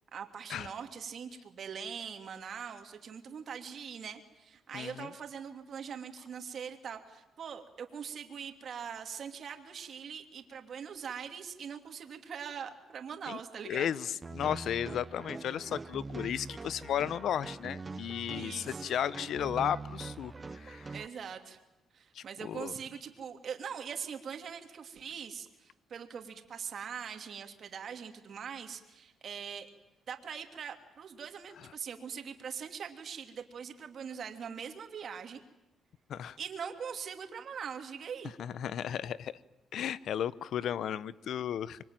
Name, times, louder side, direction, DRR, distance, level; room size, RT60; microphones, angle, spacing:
voice 1, 0.1-13.9 17.9-18.9 20.9-21.6 21.9-29.7 30.1-35.4 36.4-38.3, right 7 dB, 55° right, 3.0 m, -42 dB
voice 2, 4.7-5.1 13.3-13.4 13.6-20.9 22.1-22.7 36.1-36.4 38.4-39.3 39.7-41.8, left 9 dB, 70° left, 0.9 m, -34 dB
sound 1, 14.2-21.1, right 3 dB, 25° right, 0.9 m, -43 dB
25.5 x 23.5 x 9.1 m
cardioid pair, 90°, 0 cm